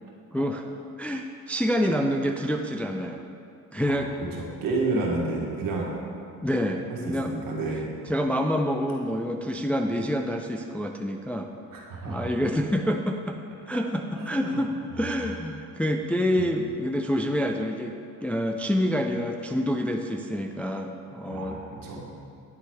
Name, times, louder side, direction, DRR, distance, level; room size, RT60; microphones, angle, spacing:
voice 1, 0.3-0.6 1.0-3.2 3.7-4.1 6.4-7.4 8.1-11.5 12.1-13.4 13.7-14.7 15.0-21.6, equal, 5° left, 4 dB, 0.3 m, -27 dB
voice 2, 4.3-5.9 7.0-7.8 11.7-12.3 14.2-14.6 15.0-15.1 21.3-22.0, right 3 dB, 70° right, -2 dB, 1.7 m, -30 dB
9.6 x 4.0 x 4.8 m, 2.4 s
cardioid pair, 95°, 34 cm